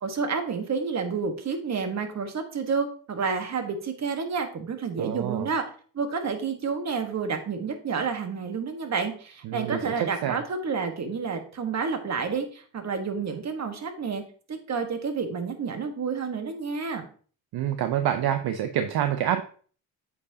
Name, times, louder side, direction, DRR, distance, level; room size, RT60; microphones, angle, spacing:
voice 1, 0.0-5.6 5.9-14.2 14.5-17.1, right 5 dB, 40° right, 6 dB, 1.3 m, -30 dB
voice 2, 5.0-5.5 9.5-10.4 17.5-19.4, right 10 dB, 60° right, 8 dB, 0.7 m, -27 dB
8.2 x 4.8 x 2.7 m, 0.43 s
cardioid pair, 85°, 42 cm